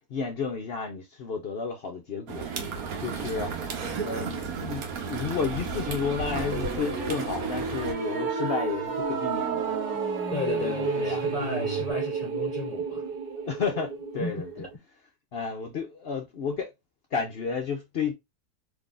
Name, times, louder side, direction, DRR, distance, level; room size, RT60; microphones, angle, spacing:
voice 1, 0.1-2.5 3.0-3.6 4.0-9.8 10.6-11.3 13.3-14.7 15.3-16.7 17.1-18.1, left 5 dB, 60° left, 0.6 m, -32 dB
sound 1, 2.3-7.9, right 5 dB, 70° right, 1.3 m, -33 dB
sound 2, 5.9-11.9, right 1 dB, 10° right, 1.7 m, -38 dB
sound 3, 6.5-14.7, right 6 dB, 45° right, 0.8 m, -32 dB
voice 2, 10.3-13.0 14.2-14.7, left 2 dB, 10° left, 2.1 m, -34 dB
3.7 x 3.0 x 2.4 m
omnidirectional pair, 1.6 m